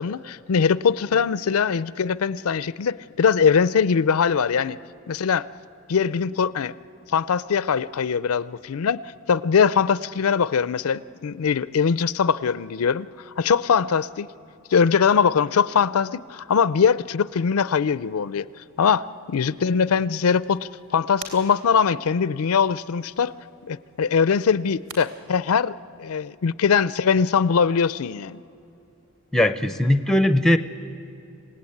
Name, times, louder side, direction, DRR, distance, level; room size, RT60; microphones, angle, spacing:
voice 1, 0.0-4.8 5.1-5.5 5.9-6.7 7.1-9.0 9.3-14.3 14.7-18.5 18.8-23.3 23.6-25.7 26.0-28.4, left 6 dB, 85° left, 17 dB, 0.5 m, -21 dB
sound 1, 18.0-25.0, right 3 dB, 80° right, 3.6 m, -48 dB
voice 2, 29.3-30.6, left 1 dB, ahead, 11 dB, 0.6 m, -19 dB
27.5 x 17.5 x 8.6 m, 2.7 s
head